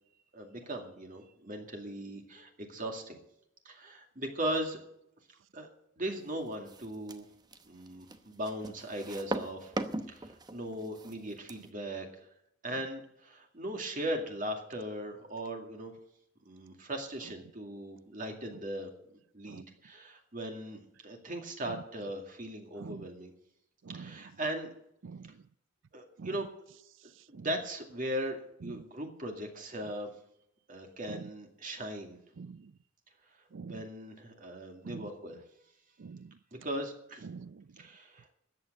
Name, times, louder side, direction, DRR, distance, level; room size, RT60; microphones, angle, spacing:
voice 1, 0.3-3.2 3.6-4.8 5.5-5.7 6.0-7.3 7.6-9.7 10.1-12.1 12.6-15.9 16.5-23.3 23.9-24.7 25.9-26.5 27.3-30.1 30.7-32.2 33.6-35.4 36.6-37.3 37.8-38.3, right 1 dB, 40° right, 2.3 m, -38 dB
sound 1, 6.5-11.7, right 1 dB, 20° right, 0.9 m, -40 dB
voice 2, 32.4-32.7 33.5-33.8 34.8-35.1 36.0-36.3 37.2-37.6, right 5 dB, 65° right, 0.4 m, -45 dB
13.5 x 8.8 x 7.8 m
head